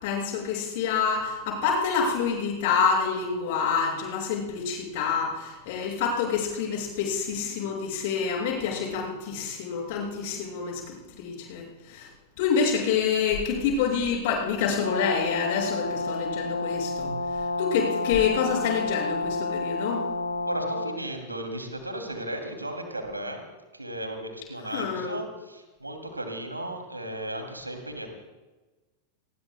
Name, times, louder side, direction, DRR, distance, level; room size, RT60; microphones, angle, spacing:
voice 1, 0.0-12.1 12.4-17.2 17.6-20.0 24.7-25.2, left 6 dB, 50° left, -1 dB, 5.9 m, -27 dB
Brass instrument, 14.8-21.0, left 2 dB, 85° left, 1.6 m, -30 dB
voice 2, 20.4-28.1, right 1 dB, 85° right, 4 dB, 2.7 m, -35 dB
29.0 x 20.0 x 2.2 m, 1.2 s
figure-of-eight pair, 90°, 0 cm